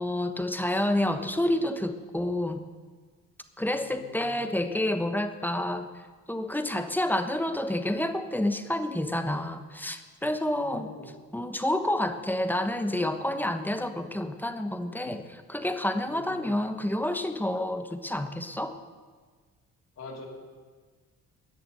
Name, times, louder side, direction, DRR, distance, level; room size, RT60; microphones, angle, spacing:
voice 1, 0.0-2.6 3.6-10.9 11.3-18.7, left 1 dB, 5° left, 8 dB, 1.2 m, -29 dB
voice 2, 3.8-4.4 10.4-11.1 16.1-16.5 20.0-20.3, left 3 dB, 60° left, -1 dB, 3.6 m, -44 dB
19.5 x 6.8 x 7.9 m, 1.5 s
cardioid pair, 90°, 30 cm